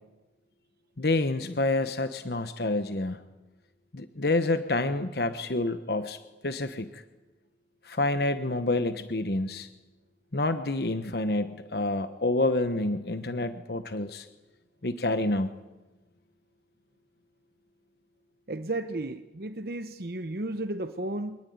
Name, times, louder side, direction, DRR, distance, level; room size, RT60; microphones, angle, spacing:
voice 1, 1.0-3.2 3.9-6.2 6.4-7.0 7.8-9.7 10.3-14.3 14.8-15.5, left 2 dB, 65° left, 10 dB, 1.1 m, -28 dB
voice 2, 18.5-21.4, right 2 dB, 60° right, 9 dB, 1.0 m, -33 dB
24.5 x 19.5 x 9.5 m, 1.1 s
head